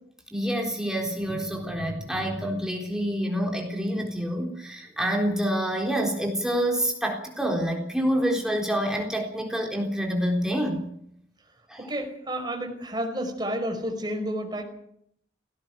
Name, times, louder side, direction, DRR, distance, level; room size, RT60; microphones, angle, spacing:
voice 1, 0.3-10.9 11.7-11.9, equal, 5° right, 1 dB, 3.8 m, -27 dB
voice 2, 11.8-14.6, equal, 25° right, 2 dB, 5.2 m, -30 dB
17.5 x 17.0 x 9.1 m, 0.70 s
head